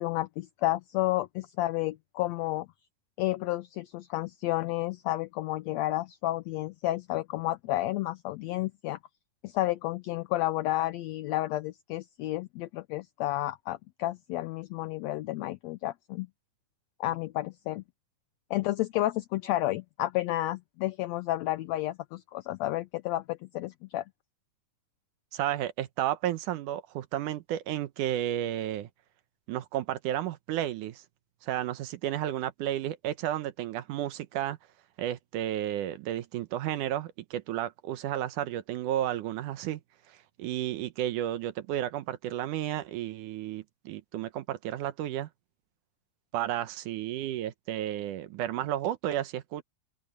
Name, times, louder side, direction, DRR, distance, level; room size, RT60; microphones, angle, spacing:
voice 1, 0.0-2.7 3.2-9.0 9.4-16.3 17.0-17.8 18.5-24.0, left 16 dB, 80° left, 1.6 m, -31 dB
voice 2, 25.3-28.9 29.5-31.0 31.4-34.6 35.0-39.8 40.4-45.3 46.3-49.6, right 12 dB, 80° right, 2.4 m, -32 dB
open air
omnidirectional pair, 3.7 m